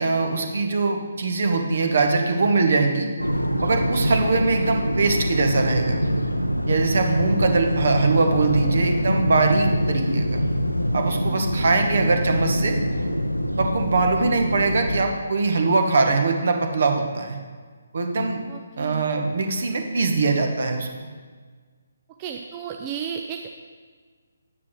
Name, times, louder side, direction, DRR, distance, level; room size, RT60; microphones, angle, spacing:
voice 1, 0.0-3.1 3.6-6.0 6.7-10.4 10.9-12.8 13.6-17.4 17.9-18.4 18.8-20.9, right 3 dB, 50° right, 4 dB, 1.2 m, -22 dB
sound 1, 3.2-15.0, equal, 90° left, 0.6 m, -24 dB
voice 2, 11.2-11.8 18.5-19.0 22.2-23.5, right 7 dB, 20° right, 3 dB, 0.5 m, -34 dB
9.8 x 9.1 x 3.2 m, 1.5 s
figure-of-eight pair, 140°, 0 cm